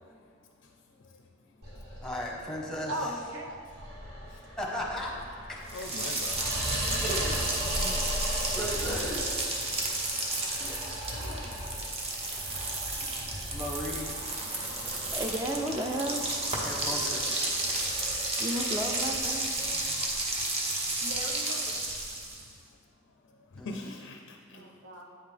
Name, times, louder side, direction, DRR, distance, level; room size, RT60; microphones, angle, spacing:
voice 1, 0.0-2.0 4.0-4.6 5.7-6.5 10.2-10.3 13.3-13.5 14.5-15.1 17.5-18.4 19.4-21.0 22.1-24.6, left 2 dB, 65° left, 4 dB, 0.5 m, -48 dB
sound 1, 1.6-21.3, equal, 60° right, 2.0 m, -39 dB
voice 2, 2.0-2.9 4.6-5.1 5.5-5.9 7.0-8.1 8.5-9.3 10.6-10.8 11.3-11.4 13.0-13.1 13.5-14.1 16.6-17.3 23.6-23.9, equal, ahead, -2 dB, 1.0 m, -36 dB
voice 3, 2.9-3.6 6.4-7.0 11.1-11.6 19.4-19.9 21.0-21.8 24.5-25.0, equal, 75° right, 1 dB, 0.9 m, -40 dB
sound 2, 5.7-22.5, right 2 dB, 30° right, 0.9 m, -32 dB
voice 4, 15.1-16.2 18.4-19.5 24.5-24.7, right 1 dB, 15° right, 2 dB, 0.5 m, -33 dB
8.7 x 5.6 x 3.3 m, 2.1 s
head